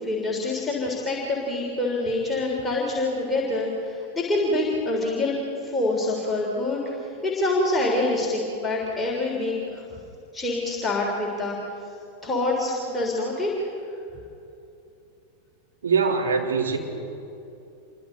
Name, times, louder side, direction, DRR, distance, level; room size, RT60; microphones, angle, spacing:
voice 1, 0.0-5.4 5.6-9.8 10.3-11.6 12.2-13.5, left 2 dB, 10° left, -4 dB, 3.6 m, -26 dB
voice 2, 15.8-16.8, right 5 dB, 65° right, 0 dB, 3.3 m, -22 dB
28.0 x 23.5 x 4.0 m, 2.7 s
figure-of-eight pair, 90°, 0 cm